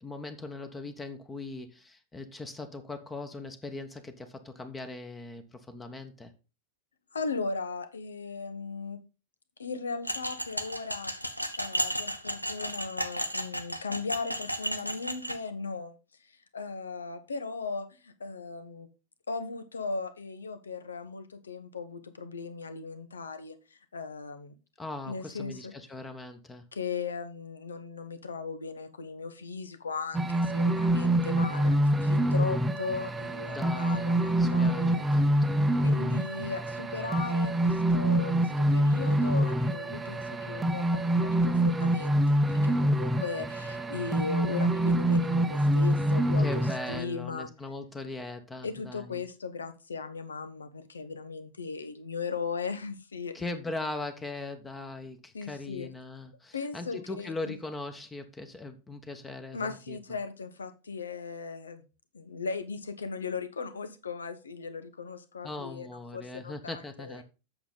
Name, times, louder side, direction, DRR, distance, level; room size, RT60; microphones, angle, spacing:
voice 1, 0.0-6.3 24.8-26.6 33.4-35.6 46.4-49.2 53.3-60.0 65.4-67.2, left 2 dB, 15° left, 1.2 m, -40 dB
voice 2, 7.1-9.0 9.6-11.1 11.6-15.9 16.2-18.9 19.3-24.5 25.1-25.7 26.7-35.0 35.8-47.5 48.6-53.4 55.3-55.9 56.5-57.5 59.5-61.8 62.1-65.9 66.1-67.2, left 4 dB, 70° left, 1.2 m, -37 dB
sound 1, 10.0-15.4, equal, 90° left, 0.9 m, -34 dB
sound 2, 30.1-47.0, right 1 dB, 10° right, 0.9 m, -26 dB
8.4 x 6.9 x 3.9 m
figure-of-eight pair, 90°, 0 cm